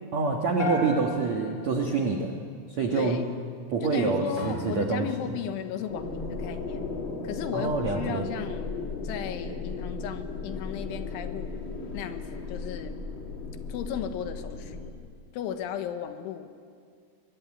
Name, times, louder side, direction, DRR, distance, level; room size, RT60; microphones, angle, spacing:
voice 1, 0.1-2.3 2.7-3.2 3.7-5.1 7.5-8.2, right 4 dB, 75° right, 1 dB, 1.6 m, -26 dB
sound 1, 0.6-2.9, left 4 dB, 20° left, 2.4 m, -35 dB
voice 2, 2.9-3.3 3.8-6.9 7.2-8.8 9.0-11.5 11.9-13.0 13.7-14.8 15.3-16.5, left 9 dB, 75° left, 7 dB, 3.5 m, -35 dB
sound 2, 4.4-9.1, right 1 dB, 25° right, 4.1 m, -45 dB
sound 3, 5.9-14.9, left 4 dB, 50° left, 1.4 m, -36 dB
23.5 x 22.0 x 9.6 m, 2.1 s
omnidirectional pair, 6.0 m